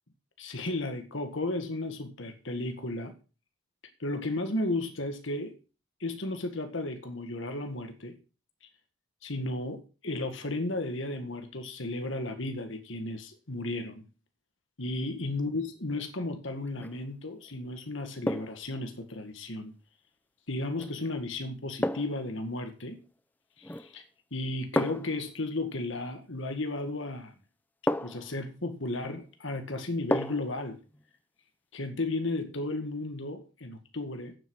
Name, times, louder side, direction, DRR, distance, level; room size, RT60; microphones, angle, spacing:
voice 1, 0.4-3.1 4.0-5.6 6.0-8.1 9.2-14.1 14.8-19.7 20.5-23.0 23.6-24.0 24.3-27.3 28.0-30.8 31.7-34.4, left 2 dB, 70° left, 7 dB, 1.9 m, -34 dB
sound 1, 16.7-17.0 18.2-18.7 20.8-21.0 21.8-22.3 23.6-24.0 24.7-25.2 26.9-27.0 27.9-28.3 30.1-30.5 30.9-31.0, left 1 dB, 10° left, 0.5 m, -31 dB
8.9 x 8.1 x 6.4 m, 0.34 s
head